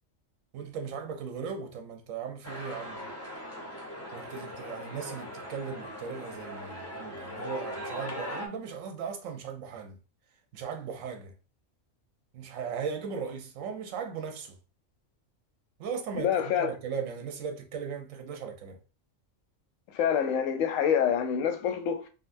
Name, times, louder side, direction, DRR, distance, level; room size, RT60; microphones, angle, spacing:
voice 1, 0.5-3.0 4.1-10.0 10.5-11.3 12.3-14.6 15.8-18.8, right 6 dB, 80° right, 1.1 m, -37 dB
sound 1, 2.4-8.5, equal, 20° left, 0.5 m, -40 dB
voice 2, 16.2-16.7 19.9-22.1, left 8 dB, 85° left, 1.0 m, -26 dB
3.9 x 2.1 x 2.5 m
omnidirectional pair, 1.3 m